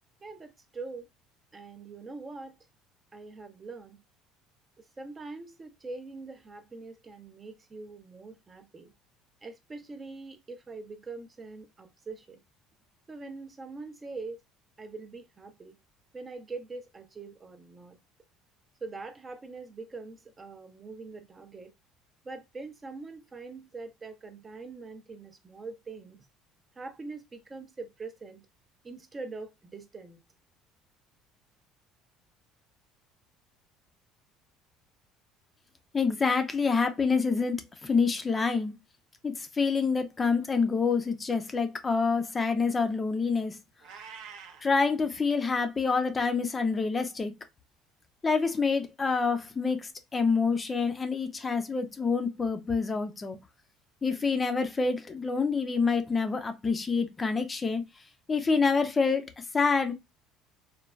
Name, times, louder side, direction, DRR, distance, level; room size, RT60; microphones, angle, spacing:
voice 1, 0.2-1.1 1.5-2.6 3.1-4.0 4.8-8.9 9.4-12.4 13.1-14.4 14.8-15.8 16.1-18.0 18.8-21.7 22.2-26.2 26.8-28.5 28.8-30.2, right 3 dB, 25° right, 0.5 m, -43 dB
voice 2, 35.9-38.7 39.2-43.6 44.6-47.3 48.2-53.4 54.0-57.8 58.3-59.9, left 4 dB, 25° left, 0.4 m, -27 dB
Meow, 43.8-44.7, right 7 dB, 75° right, 0.6 m, -45 dB
3.2 x 2.2 x 2.2 m
supercardioid pair, 95°, 0 cm